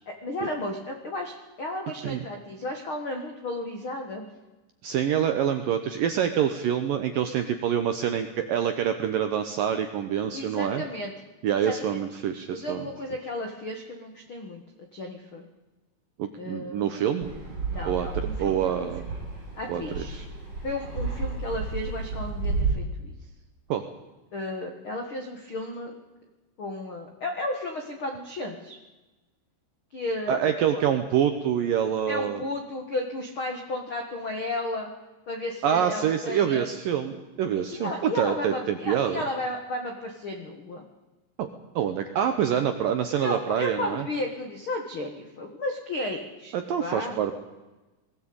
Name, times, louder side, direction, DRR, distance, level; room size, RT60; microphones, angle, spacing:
voice 1, 0.1-4.3 10.3-11.1 11.6-12.0 12.5-15.4 16.4-16.9 17.7-18.9 19.5-20.1 20.6-23.1 24.3-25.9 26.6-28.8 29.9-30.4 30.7-30.8 32.1-34.9 35.3-36.7 37.7-40.9 43.2-46.5 46.8-47.2, left 1 dB, 75° left, 4 dB, 1.2 m, -33 dB
voice 2, 4.8-10.8 11.4-12.9 16.2-17.3 17.9-19.0 19.7-20.3 23.7-23.8 30.3-32.4 35.6-39.2 41.4-41.5 41.8-44.1 46.5-47.3, right 9 dB, 75° right, 7 dB, 2.0 m, -26 dB
Fixed-wing aircraft airplane, 17.2-22.7, right 4 dB, 30° right, 7.2 m, -32 dB
20.5 x 16.5 x 8.8 m, 1.1 s
omnidirectional pair, 5.4 m